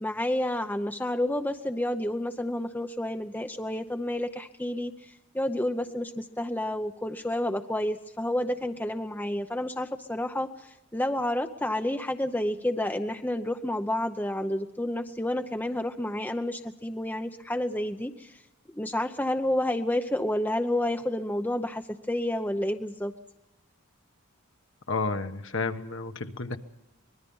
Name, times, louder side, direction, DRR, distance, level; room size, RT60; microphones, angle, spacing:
voice 1, 0.0-18.4 18.7-23.1, left 1 dB, 10° left, 6 dB, 0.8 m, -30 dB
voice 2, 24.9-26.6, left 3 dB, 60° left, 7 dB, 1.3 m, -31 dB
24.5 x 21.0 x 5.6 m, 0.93 s
head